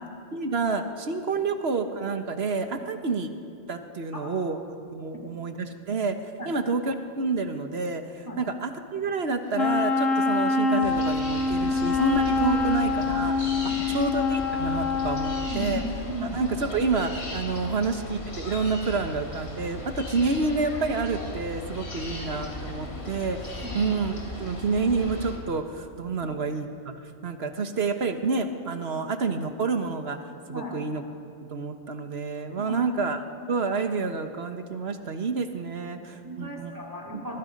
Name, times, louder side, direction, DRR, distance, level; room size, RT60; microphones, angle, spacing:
voice 1, 0.3-3.3 3.7-4.6 4.9-6.2 6.4-15.8 16.2-26.7 27.2-31.0 31.5-33.2 33.5-36.7 37.1-37.2, right 4 dB, 55° right, 7 dB, 1.5 m, -29 dB
Wind instrument woodwind instrument, 9.5-15.7, left 4 dB, 85° left, 1.8 m, -25 dB
sound 1, 10.8-25.3, left 1 dB, 55° left, 3.2 m, -37 dB
voice 2, 15.4-16.4 23.6-23.8 26.2-26.3 30.5-30.7 32.6-32.8 36.2-37.4, left 1 dB, 15° right, -1 dB, 2.6 m, -36 dB
24.0 x 22.5 x 5.3 m, 2.5 s
omnidirectional pair, 1.3 m